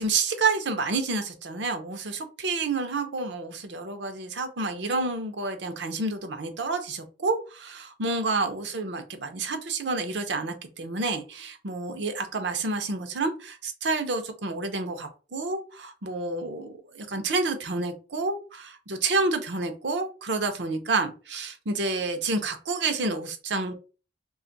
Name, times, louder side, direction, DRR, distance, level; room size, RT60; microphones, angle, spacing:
voice 1, 0.0-23.7, right 3 dB, 75° right, 6 dB, 0.7 m, -29 dB
2.5 x 2.4 x 3.9 m, 0.34 s
head